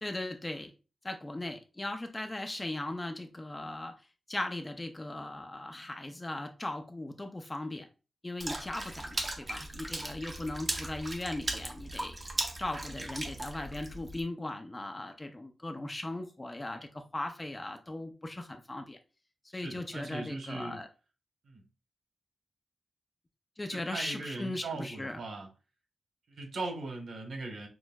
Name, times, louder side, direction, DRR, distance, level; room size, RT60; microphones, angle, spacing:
voice 1, 0.0-0.7 1.0-3.9 4.3-7.9 8.2-12.2 12.6-19.0 19.5-20.9 23.6-25.2, left 2 dB, 20° left, 0.5 m, -38 dB
Water / Splash splatter, 8.4-14.2, right 1 dB, 25° right, 0.6 m, -38 dB
voice 2, 19.5-20.8 21.4-21.6 23.7-25.5 26.3-27.7, right 3 dB, 85° right, 1.3 m, -39 dB
6.2 x 2.5 x 2.2 m
wide cardioid pair, 160°, 0 cm